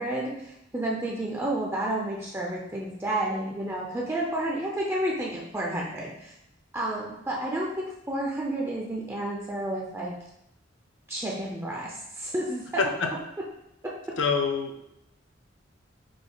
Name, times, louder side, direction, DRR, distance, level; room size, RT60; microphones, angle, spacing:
voice 1, 0.0-6.3 6.7-10.2 11.1-12.9, right 1 dB, 15° right, -3 dB, 0.4 m, -31 dB
voice 2, 12.8-13.1 14.2-14.8, left 5 dB, 70° left, 4 dB, 0.5 m, -26 dB
4.9 x 2.2 x 3.8 m, 0.81 s
head